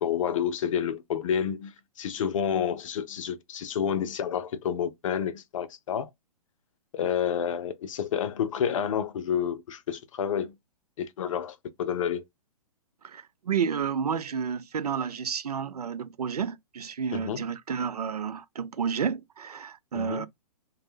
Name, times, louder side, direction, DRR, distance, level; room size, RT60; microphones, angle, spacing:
voice 1, 0.0-6.1 6.9-10.6 11.0-12.2 17.1-17.5 19.9-20.3, left 8 dB, 55° left, 0.5 m, -29 dB
voice 2, 13.0-20.3, right 7 dB, 80° right, 0.4 m, -31 dB
2.1 x 2.1 x 3.1 m
figure-of-eight pair, 120°, 19 cm